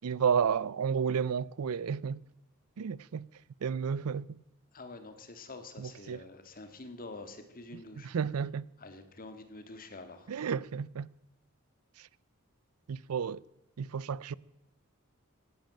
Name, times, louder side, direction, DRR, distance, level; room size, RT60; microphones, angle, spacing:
voice 1, 0.0-2.2 2.8-3.3 3.6-4.4 5.8-6.2 8.0-8.7 10.3-11.1 12.0-12.1 12.9-13.4 13.8-14.3, right 7 dB, 85° right, 0.5 m, -32 dB
voice 2, 4.7-8.1 8.8-10.3, left 2 dB, 40° left, 1.8 m, -47 dB
16.5 x 10.5 x 7.7 m
head